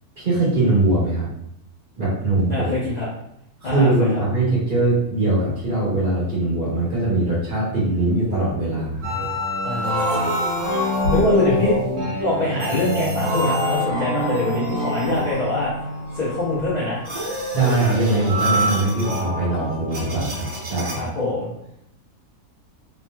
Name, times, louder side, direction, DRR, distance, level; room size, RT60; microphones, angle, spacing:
voice 1, 0.2-1.3 2.0-2.7 3.6-9.3 11.5-11.6 17.5-21.1, right 2 dB, 35° right, -8 dB, 1.2 m, -21 dB
voice 2, 2.5-3.1 3.6-4.2 9.6-10.4 11.1-11.8 12.2-15.7 16.1-17.0 20.9-21.5, left 2 dB, 45° left, -8 dB, 0.6 m, -24 dB
sound 1, 9.0-21.1, equal, 60° right, 1.3 m, -25 dB
3.1 x 2.9 x 2.3 m, 0.78 s
omnidirectional pair, 1.7 m